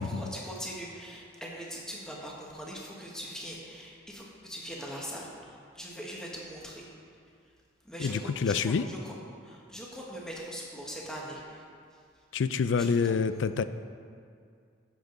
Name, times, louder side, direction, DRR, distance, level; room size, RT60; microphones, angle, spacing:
voice 1, 0.0-6.9 7.8-9.1 9.4-11.6 12.7-13.2, equal, 5° left, -4 dB, 1.4 m, -41 dB
voice 2, 8.0-8.9 12.3-13.6, left 5 dB, 75° left, 12 dB, 0.4 m, -27 dB
11.0 x 7.5 x 3.9 m, 2.3 s
head